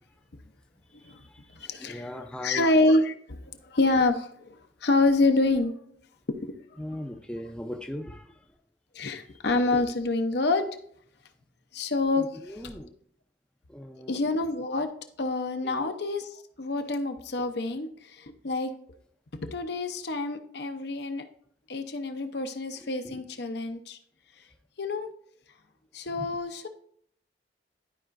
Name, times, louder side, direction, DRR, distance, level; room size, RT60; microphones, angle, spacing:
voice 1, 1.0-2.7 6.8-8.3 12.2-12.9 13.7-14.3 15.6-15.9 23.0-23.2 26.1-26.2, left 1 dB, 5° left, 0.5 m, -39 dB
voice 2, 1.6-2.1 2.4-5.7 6.3-6.5 8.9-10.6 11.7-12.7 14.1-14.9 15.2-18.7 19.5-21.2 21.7-24.0 24.8-25.1 25.9-26.7, left 2 dB, 60° left, 0.7 m, -27 dB
12.0 x 4.9 x 2.5 m
head